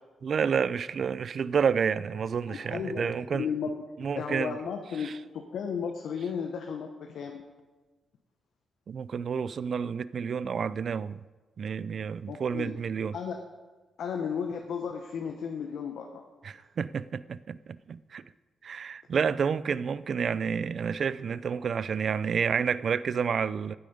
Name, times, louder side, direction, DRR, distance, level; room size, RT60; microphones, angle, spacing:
voice 1, 0.2-3.5 4.0-4.6 5.0-5.1 8.9-11.2 11.6-13.1 16.4-18.2 18.6-23.7, right 6 dB, 45° right, 0.3 m, -29 dB
voice 2, 2.5-3.7 4.1-7.4 12.3-12.7 13.1-13.4 14.0-16.2, left 6 dB, 70° left, 1.0 m, -34 dB
12.0 x 8.6 x 5.4 m
wide cardioid pair, 160°, 0 cm